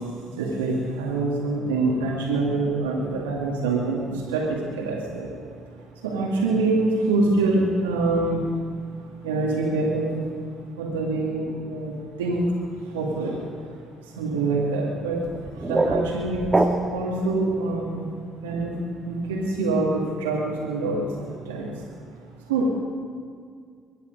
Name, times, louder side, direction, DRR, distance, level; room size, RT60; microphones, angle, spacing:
voice 1, 0.4-5.3 6.0-8.4 9.2-10.2 10.8-12.4 12.8-13.4 14.2-15.2 15.6-16.6 16.9-18.1 18.4-18.7 19.0-21.7 22.5-22.7, right 3 dB, 90° right, -3 dB, 2.1 m, -25 dB
sound 1, 15.2-17.2, right 2 dB, 20° right, 1.5 m, -25 dB
23.5 x 9.6 x 5.3 m, 2.1 s
hypercardioid pair, 55°, 0 cm